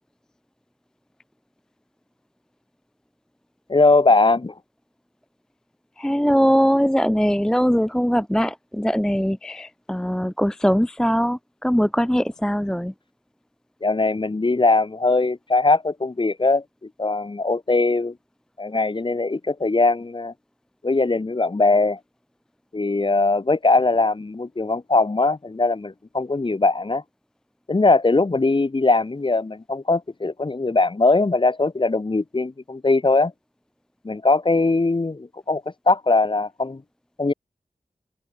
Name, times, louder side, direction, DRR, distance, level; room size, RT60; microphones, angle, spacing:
voice 1, 3.7-4.5 13.8-16.6 17.0-18.1 18.6-20.3 20.8-22.0 22.7-27.0 27.7-33.3 34.0-36.8 37.2-37.3, left 3 dB, 35° left, 1.2 m, -20 dB
voice 2, 6.0-12.9, equal, 5° left, 0.4 m, -21 dB
open air
wide cardioid pair, 85°, 14 cm